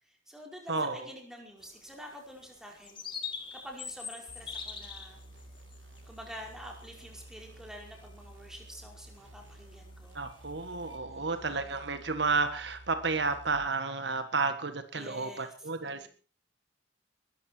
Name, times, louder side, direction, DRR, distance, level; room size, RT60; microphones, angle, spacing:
voice 1, 0.1-3.0 3.5-5.2 6.1-10.2 11.1-11.8 14.9-15.5 15.8-16.1, equal, 5° right, 0 dB, 5.2 m, -48 dB
voice 2, 0.7-1.1 10.1-16.1, right 4 dB, 65° right, 9 dB, 1.7 m, -31 dB
sound 1, 1.6-11.0, left 6 dB, 25° left, 2.7 m, -46 dB
sound 2, 4.3-13.7, right 1 dB, 90° right, 2.7 m, -52 dB
21.0 x 14.0 x 4.6 m, 0.37 s
head